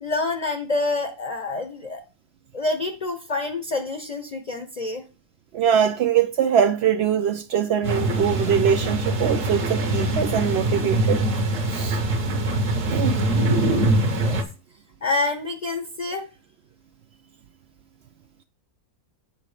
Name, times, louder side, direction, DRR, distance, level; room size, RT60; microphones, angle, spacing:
voice 1, 0.0-2.0 2.5-5.0 14.1-14.4 15.0-16.3, left 3 dB, 35° left, 0.7 m, -27 dB
voice 2, 5.5-11.3 11.7-12.0 12.9-13.2, right 8 dB, 85° right, 0.5 m, -22 dB
sound 1, 7.8-14.4, right 1 dB, 55° right, 1.6 m, -23 dB
8.3 x 5.0 x 4.9 m
omnidirectional pair, 1.7 m